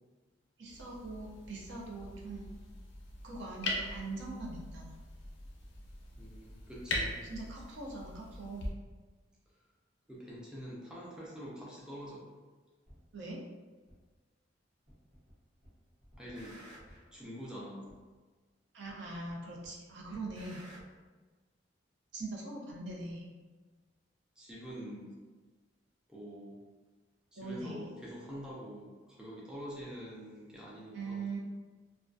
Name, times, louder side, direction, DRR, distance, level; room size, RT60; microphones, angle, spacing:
voice 1, 0.6-2.5 3.2-4.9 7.2-8.7 13.1-13.4 18.7-20.7 22.1-23.3 27.4-27.9 30.9-31.4, right 3 dB, 65° right, -2 dB, 0.5 m, -42 dB
sound 1, 0.7-8.7, left 1 dB, 80° left, 0.5 m, -41 dB
voice 2, 6.2-7.2 10.1-12.3 16.2-16.6 17.1-17.8 24.4-25.1 26.1-26.6 27.3-31.3, equal, 5° right, -5 dB, 0.4 m, -45 dB
sound 2, 12.9-13.0 13.9-14.0 14.9-15.3 15.6-17.1 17.9-18.0 18.9-19.3 19.6-20.8, equal, 40° right, 0.9 m, -54 dB
2.3 x 2.1 x 2.5 m, 1.4 s
head